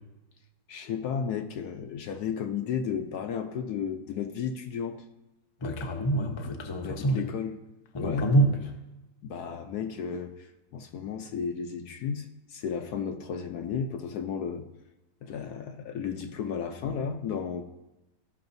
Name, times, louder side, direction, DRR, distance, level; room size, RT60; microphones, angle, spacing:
voice 1, 0.7-5.0 6.8-7.6 8.0-8.3 9.2-14.7 15.2-17.6, left 7 dB, 70° left, 6 dB, 1.0 m, -33 dB
voice 2, 5.6-7.2 7.9-8.7, right 2 dB, 30° left, 3 dB, 0.5 m, -26 dB
15.5 x 5.8 x 2.6 m, 1.0 s
omnidirectional pair, 2.0 m